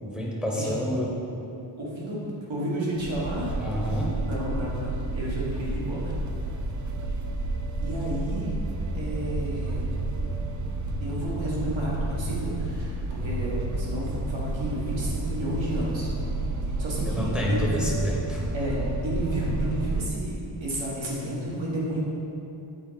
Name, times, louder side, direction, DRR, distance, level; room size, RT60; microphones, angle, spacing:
voice 1, 0.0-1.1 3.6-4.1 17.1-18.4, equal, ahead, -3 dB, 0.8 m, -28 dB
voice 2, 1.8-3.6 4.1-6.2 7.8-8.5 8.9-9.9 11.0-16.1 16.8-17.7 18.5-22.0, right 1 dB, 90° right, -5 dB, 1.4 m, -32 dB
sound 1, 3.0-20.1, right 2 dB, 45° right, 0.4 m, -30 dB
6.9 x 4.2 x 3.9 m, 2.9 s
wide cardioid pair, 105°, 45 cm